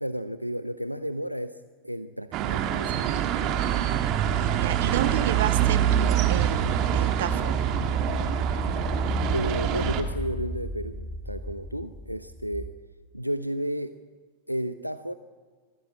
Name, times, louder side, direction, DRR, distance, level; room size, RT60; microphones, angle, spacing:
voice 1, 0.0-1.5 1.8-3.1 9.3-12.7 13.1-14.0 14.5-15.1, equal, 90° right, 12 dB, 0.7 m, -32 dB
sound 1, 2.3-10.0, right 10 dB, 40° right, 1.9 m, -25 dB
voice 2, 4.4-7.6, right 10 dB, 60° right, 11 dB, 1.4 m, -32 dB
sound 2, 5.9-12.7, equal, 5° right, 2.1 m, -34 dB
25.0 x 14.5 x 8.6 m, 1.4 s
figure-of-eight pair, 90°, 0 cm